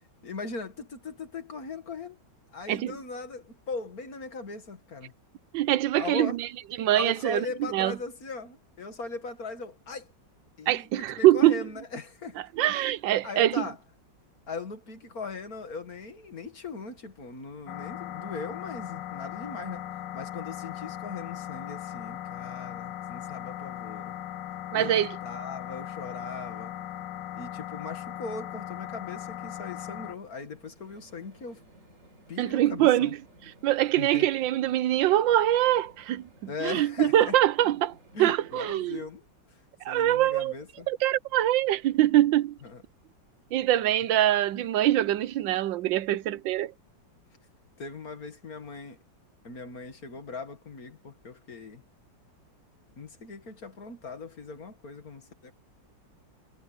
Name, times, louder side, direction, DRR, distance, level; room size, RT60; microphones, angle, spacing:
voice 1, 0.2-2.2 2.5-5.1 5.9-6.4 6.9-10.1 10.6-12.4 12.7-12.8 13.2-13.8 14.5-19.8 20.1-24.2 24.7-26.7 27.3-31.6 32.3-33.1 34.0-34.3 36.5-37.4 38.1-39.3 39.9-40.9 42.6-42.8 47.8-49.0 49.4-51.8 53.0-55.5, left 4 dB, 50° left, 2.5 m, -39 dB
voice 2, 5.5-6.5 6.8-8.0 10.7-11.6 12.6-13.6 24.7-25.1 32.4-33.1 33.6-39.0 39.8-40.5 40.9-42.6 43.5-46.7, right 13 dB, 90° right, 1.4 m, -24 dB
sound 1, 17.7-30.2, left 12 dB, 75° left, 1.4 m, -38 dB
sound 2, 29.9-38.9, right 1 dB, 40° right, 5.0 m, -58 dB
omnidirectional pair, 2.0 m